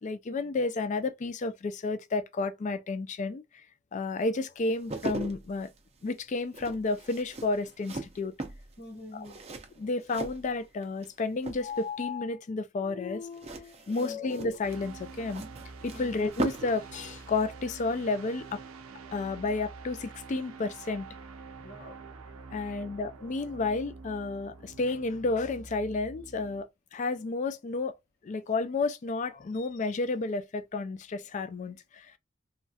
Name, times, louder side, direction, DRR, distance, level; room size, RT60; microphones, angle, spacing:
voice 1, 0.0-3.4 3.9-5.7 6.0-8.3 9.1-9.3 9.8-15.4 15.8-18.6 19.1-21.1 22.5-26.7 26.9-27.9 28.2-32.1, left 3 dB, 35° left, 0.3 m, -31 dB
sound 1, 4.6-11.1 11.4-12.0 13.3-16.8 17.1-17.2, right 2 dB, 30° right, 0.5 m, -39 dB
voice 2, 8.8-9.4 13.9-14.2 15.9-16.2 21.6-22.0 22.5-22.8, left 1 dB, 50° left, 1.0 m, -46 dB
sound 2, 14.6-26.6, right 4 dB, 85° right, 0.5 m, -47 dB
3.1 x 2.3 x 2.6 m
head